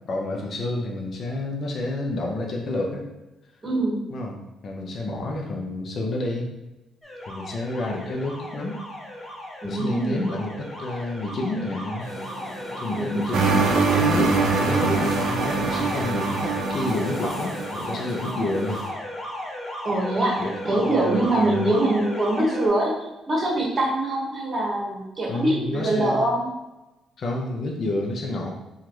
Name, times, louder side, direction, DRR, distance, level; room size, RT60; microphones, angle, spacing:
voice 1, 0.0-3.1 4.1-6.5 7.3-8.8 9.6-12.1 12.8-18.8 20.4-20.5 20.9-21.7 25.3-26.2 27.2-28.6, left 2 dB, 55° left, 1 dB, 0.6 m, -29 dB
voice 2, 3.6-4.0 9.6-10.3 12.9-13.4 19.8-20.4 20.6-22.9 23.3-26.4, right 1 dB, 35° right, -4 dB, 1.2 m, -23 dB
Alarm, 7.0-22.7, left 1 dB, 10° left, 0.8 m, -35 dB
sound 1, 12.0-18.9, equal, 35° left, 1.3 m, -39 dB
sound 2, 13.3-17.7, right 4 dB, 70° right, 0.4 m, -23 dB
3.0 x 2.4 x 3.0 m, 0.99 s
cardioid pair, 90°, 0 cm